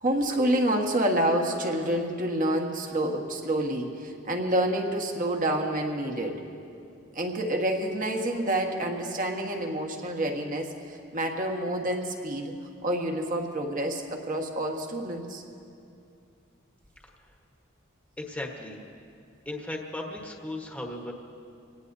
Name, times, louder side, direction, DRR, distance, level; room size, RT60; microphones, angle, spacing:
voice 1, 0.0-6.4 7.1-12.5 12.8-15.4, right 1 dB, 45° right, 2 dB, 1.6 m, -28 dB
voice 2, 18.2-18.8 19.4-21.1, left 1 dB, 5° left, 0 dB, 1.3 m, -36 dB
26.0 x 18.5 x 2.7 m, 2.5 s
head